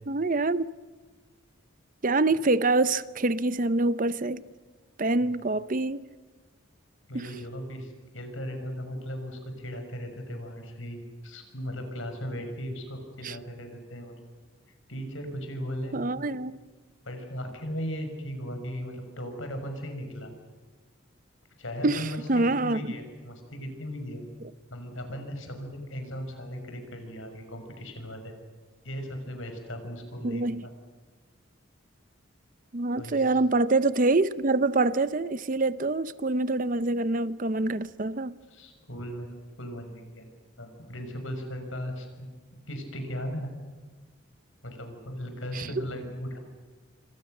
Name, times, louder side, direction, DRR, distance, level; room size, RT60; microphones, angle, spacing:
voice 1, 0.1-0.6 2.0-4.4 5.0-6.1 7.1-7.3 13.2-13.4 15.9-16.6 21.8-22.8 30.2-30.6 32.7-38.3 45.5-45.7, right 2 dB, 40° right, 0.7 m, -25 dB
voice 2, 7.1-14.1 14.9-16.3 17.0-20.3 21.6-24.2 24.7-28.3 28.8-30.7 33.0-33.4 38.5-39.3 39.6-40.3 40.6-42.3 42.7-43.5 44.6-46.4, equal, 75° left, 6.1 m, -37 dB
27.0 x 26.0 x 6.7 m
head